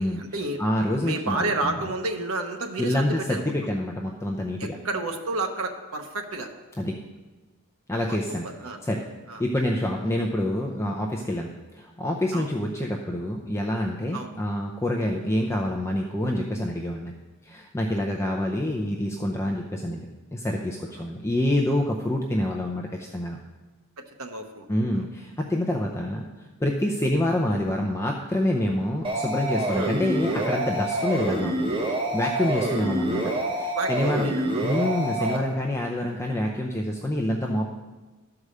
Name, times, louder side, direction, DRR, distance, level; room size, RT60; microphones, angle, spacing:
voice 1, 0.0-0.6 1.0-3.5 4.6-6.5 8.1-8.2 8.4-8.8 9.3-9.4 12.3-12.5 14.1-14.3 24.0-24.7 24.9-25.0 29.7-29.9 33.7-34.7 35.2-35.3, right 2 dB, 65° right, 4 dB, 1.0 m, -31 dB
voice 2, 0.6-1.9 2.8-4.8 6.8-7.0 7.9-8.5 8.8-9.0 9.4-11.5 11.7-17.1 17.4-20.1 20.3-23.4 24.7-26.3 26.6-31.5 32.1-34.3 34.6-37.7, left 1 dB, 10° left, 0 dB, 0.6 m, -27 dB
sound 1, 29.0-35.4, right 1 dB, 25° right, 0.9 m, -27 dB
12.5 x 4.8 x 6.6 m, 1.2 s
head